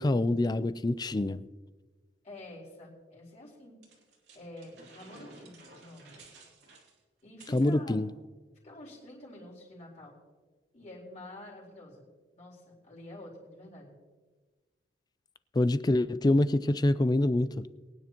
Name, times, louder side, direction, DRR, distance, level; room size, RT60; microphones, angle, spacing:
voice 1, 0.0-1.5 7.5-8.1 15.5-17.6, left 1 dB, 25° left, 15 dB, 0.4 m, -26 dB
voice 2, 2.2-3.8 4.3-6.2 7.2-8.0 8.6-10.2 10.7-12.1 12.3-14.0, left 1 dB, 40° left, -5 dB, 3.9 m, -48 dB
sound 1, 3.8-7.7, right 3 dB, 80° right, 2.8 m, -54 dB
22.5 x 9.5 x 3.0 m, 1.3 s
head